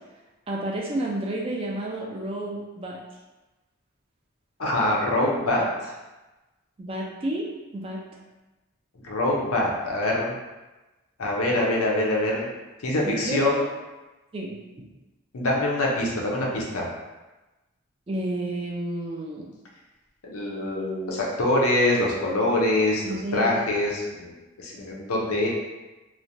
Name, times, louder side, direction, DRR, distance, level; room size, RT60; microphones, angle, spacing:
voice 1, 0.5-3.0 6.8-7.5 7.7-8.0 13.0-13.4 14.3-14.9 18.1-19.5 23.0-23.5, right 1 dB, 25° right, -2 dB, 0.3 m, -31 dB
voice 2, 4.6-5.9 9.0-10.3 11.2-12.5 12.8-13.6 15.3-16.9 20.2-25.5, left 1 dB, 85° left, -2 dB, 0.6 m, -24 dB
3.0 x 2.1 x 2.6 m, 1.1 s
head